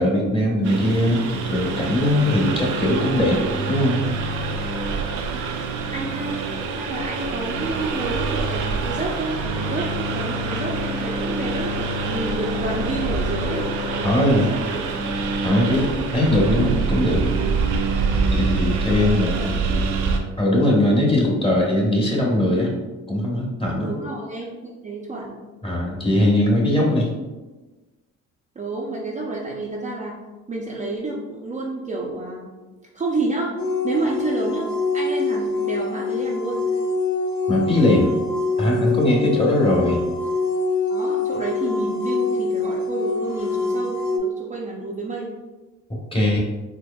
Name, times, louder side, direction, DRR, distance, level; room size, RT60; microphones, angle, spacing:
voice 1, 0.0-4.0 14.0-14.5 15.4-17.2 18.3-19.3 20.4-22.7 23.1-23.9 25.6-27.1 37.5-38.1 38.6-40.1 45.9-46.4, left 1 dB, 20° left, -2 dB, 1.0 m, -20 dB
Engine, 0.6-20.2, right 3 dB, 75° right, 0.5 m, -25 dB
voice 2, 5.1-6.5 6.7-14.9 15.5-15.8 19.0-19.8 23.8-25.4 28.6-30.2 30.5-32.5 32.9-33.5 33.8-36.6 39.2-39.4 40.9-45.3, right 2 dB, 25° right, -3 dB, 0.5 m, -30 dB
sound 1, 33.6-44.2, left 3 dB, 75° left, 0.7 m, -25 dB
4.3 x 2.8 x 2.3 m, 1.2 s
cardioid pair, 90°, 30 cm